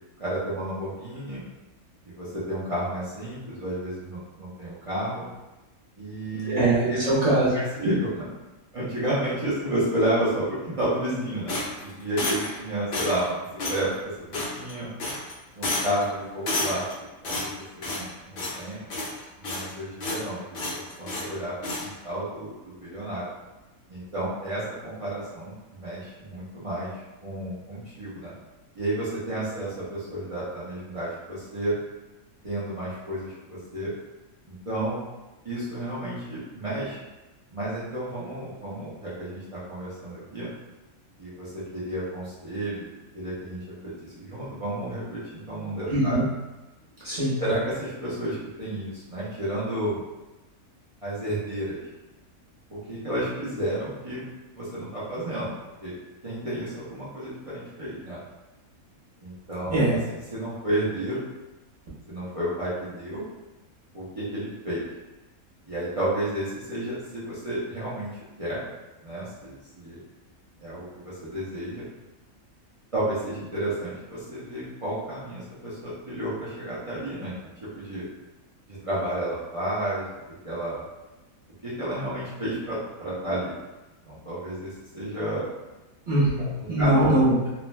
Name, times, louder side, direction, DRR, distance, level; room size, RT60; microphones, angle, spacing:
voice 1, 0.2-1.4 2.1-5.2 6.0-7.1 7.5-8.2 8.7-14.9 15.6-18.8 19.4-21.5 21.8-23.3 23.9-28.3 28.8-31.7 32.4-33.9 34.5-35.0 35.4-37.0 37.5-40.5 41.2-46.2 47.4-50.0 51.0-51.8 52.7-54.2 54.5-55.5 55.8-55.9 56.2-58.2 59.2-61.2 62.1-63.2 63.9-64.8 65.7-68.6 69.0-70.0 70.6-71.8 72.9-77.3 77.6-78.0 78.7-80.2 80.4-80.8 81.6-83.5 84.1-85.5 86.4-86.9, right 1 dB, 65° right, -11 dB, 0.3 m, -31 dB
voice 2, 6.5-7.6 45.9-46.2 47.0-47.4 59.7-60.0 86.1-87.5, right 1 dB, 35° right, -10 dB, 0.8 m, -22 dB
sound 1, 11.5-12.6 12.9-13.3 13.6-13.8 14.3-14.7 15.0-15.3 15.6-16.0 16.5-16.9 17.2-18.1 18.4-18.6 18.9-19.7 20.0-20.3 20.5-21.3 21.6-21.9, left 2 dB, 60° left, 0.5 m, -30 dB
2.5 x 2.1 x 3.1 m, 1.1 s
omnidirectional pair, 1.5 m